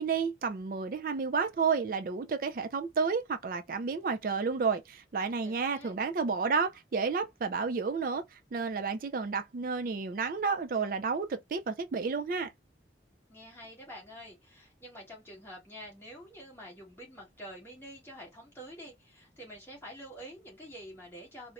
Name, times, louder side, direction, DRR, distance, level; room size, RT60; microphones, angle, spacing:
voice 1, 0.0-12.5, right 5 dB, 50° right, 0.3 m, -31 dB
voice 2, 5.4-6.0 13.3-21.5, equal, 15° left, 1.5 m, -47 dB
4.0 x 2.1 x 2.5 m
head